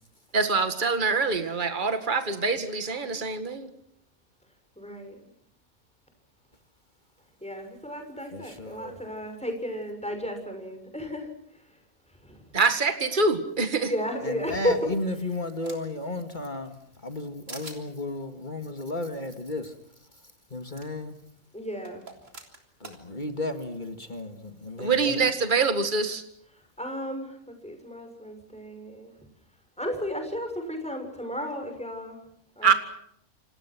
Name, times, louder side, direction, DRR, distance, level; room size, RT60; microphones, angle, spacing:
voice 1, 0.3-3.7 12.5-13.9 24.8-26.2 32.6-32.7, right 4 dB, 35° right, 8 dB, 2.1 m, -25 dB
voice 2, 4.8-5.3 7.4-11.8 12.1-12.4 13.8-15.4 21.5-22.1 26.5-29.2 29.8-32.2 32.6-32.7, equal, 5° left, 5 dB, 6.3 m, -34 dB
voice 3, 8.3-9.0 14.2-16.8 17.0-19.7 20.5-21.2 22.8-25.2, left 2 dB, 35° left, 6 dB, 2.2 m, -34 dB
sound 1, 15.1-16.0 16.5-17.2 17.5-17.8 19.3-19.4 19.6-19.7 20.8-20.9 21.8-23.0, right 3 dB, 60° right, 4.0 m, -45 dB
28.5 x 27.0 x 6.1 m, 0.71 s
omnidirectional pair, 1.5 m